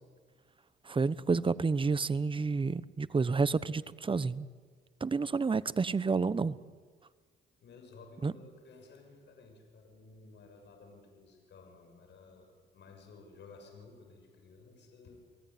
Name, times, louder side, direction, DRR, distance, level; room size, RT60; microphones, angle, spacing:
voice 1, 0.8-4.5 5.0-6.6 8.2-8.3, right 4 dB, 25° right, 16 dB, 1.0 m, -30 dB
voice 2, 7.6-15.2, left 4 dB, 65° left, 4 dB, 7.0 m, -55 dB
29.5 x 19.5 x 9.5 m, 1.5 s
cardioid pair, 90°, 20 cm